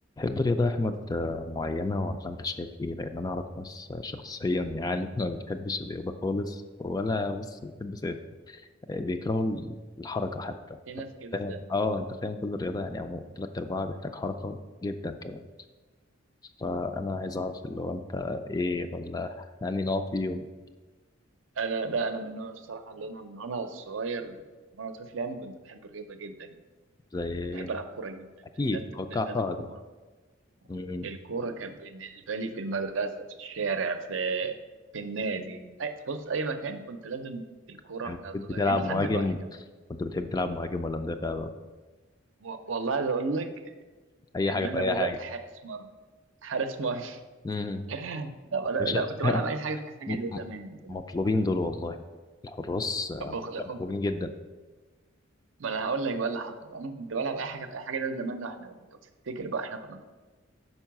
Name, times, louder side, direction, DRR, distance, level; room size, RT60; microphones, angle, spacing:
voice 1, 0.2-8.2 8.5-8.6 8.9-10.8 11.3-15.4 16.6-20.5 27.1-27.7 28.6-29.7 30.7-31.1 38.0-39.4 39.9-41.5 44.3-45.2 47.4-47.8 48.8-49.4 50.1-50.4 50.9-52.0 52.4-53.3 53.8-54.3, left 2 dB, 20° left, 7 dB, 0.3 m, -31 dB
voice 2, 10.9-11.6 21.6-24.4 24.8-26.6 27.5-28.3 28.7-28.8 29.1-29.7 31.0-33.1 33.4-34.5 34.9-39.2 42.4-43.7 44.5-45.9 46.4-47.2 47.9-51.0 53.2-53.8 55.6-58.8 59.3-60.0, right 4 dB, 75° right, 7 dB, 0.6 m, -33 dB
5.5 x 4.6 x 5.8 m, 1.3 s
head